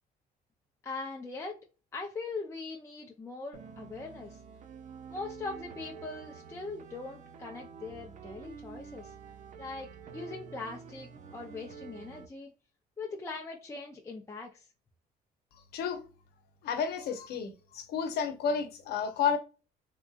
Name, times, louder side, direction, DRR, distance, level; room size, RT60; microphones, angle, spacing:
voice 1, 0.8-1.6 1.9-4.4 5.1-9.1 9.6-12.5 13.0-14.7, left 3 dB, 15° left, 0.6 m, -41 dB
sound 1, 3.5-12.3, right 6 dB, 45° right, 0.5 m, -48 dB
voice 2, 16.6-19.4, left 6 dB, 70° left, 0.8 m, -31 dB
3.5 x 2.7 x 2.4 m
cardioid pair, 110°, 17 cm